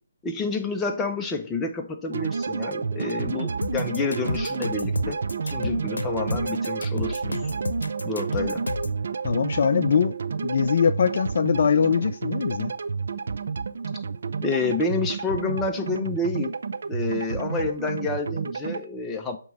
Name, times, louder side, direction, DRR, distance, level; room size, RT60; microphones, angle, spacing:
voice 1, 0.2-5.2 5.4-7.4 8.0-8.6 14.4-16.5 16.9-19.4, left 3 dB, 10° left, 2 dB, 0.6 m, -29 dB
sound 1, 2.1-18.8, right 5 dB, 60° right, 0.4 m, -30 dB
sound 2, 3.6-9.0, left 3 dB, 85° left, 0.7 m, -31 dB
voice 2, 9.2-10.2 10.4-12.7, left 6 dB, 50° left, 11 dB, 0.4 m, -22 dB
7.6 x 3.0 x 5.4 m, 0.43 s
figure-of-eight pair, 155°, 0 cm